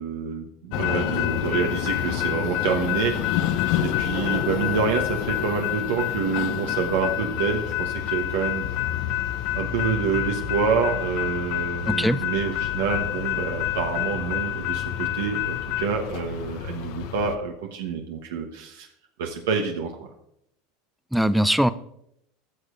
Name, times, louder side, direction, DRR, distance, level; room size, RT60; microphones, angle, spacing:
voice 1, 0.0-8.7 9.5-18.9 19.2-20.1, right 6 dB, 80° right, 2 dB, 1.1 m, -27 dB
sound 1, 0.7-17.4, left 11 dB, 65° left, 0.7 m, -27 dB
voice 2, 11.9-12.2 21.1-21.7, equal, ahead, 15 dB, 0.4 m, -21 dB
15.5 x 6.5 x 2.5 m, 0.75 s
hypercardioid pair, 100°, 0 cm